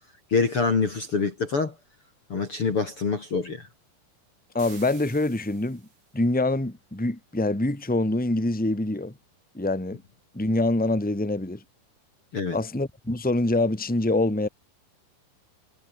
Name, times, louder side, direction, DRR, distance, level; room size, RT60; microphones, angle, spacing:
voice 1, 0.3-1.7 2.3-3.7 12.3-12.6, left 4 dB, 35° left, 3.1 m, -25 dB
voice 2, 4.5-5.8 6.1-9.1 9.5-10.0 10.3-11.6 12.5-14.5, left 2 dB, ahead, 2.9 m, -25 dB
sound 1, 4.6-6.1, right 5 dB, 90° right, 9.4 m, -48 dB
omnidirectional pair, 4.9 m